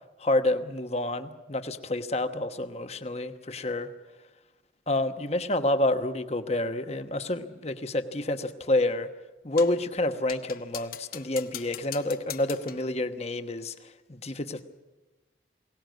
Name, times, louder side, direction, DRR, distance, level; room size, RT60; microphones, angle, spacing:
voice 1, 0.2-3.9 4.9-9.1 9.4-14.7, left 2 dB, 35° left, 8 dB, 1.2 m, -28 dB
sound 1, 9.6-9.9 10.3-12.9, left 11 dB, 55° left, 0.8 m, -41 dB
22.5 x 18.0 x 9.3 m, 1.1 s
head